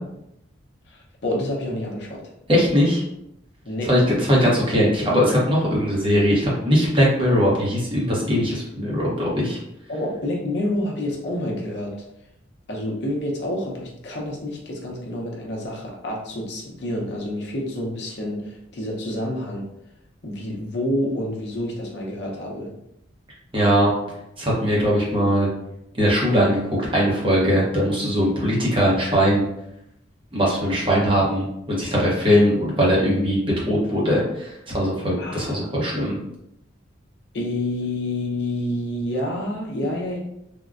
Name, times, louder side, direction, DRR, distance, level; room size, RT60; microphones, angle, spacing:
voice 1, 0.9-2.2 3.7-3.9 9.9-11.9 12.7-19.6 20.2-22.7 35.2-35.7 37.3-40.2, left 1 dB, 60° left, -1 dB, 0.6 m, -28 dB
voice 2, 2.5-3.0 3.9-9.6 23.5-23.9 24.4-25.5 25.9-26.6 26.9-29.4 30.3-33.4 33.7-36.1, equal, 25° right, -5 dB, 0.8 m, -20 dB
3.5 x 2.1 x 2.4 m, 0.81 s
head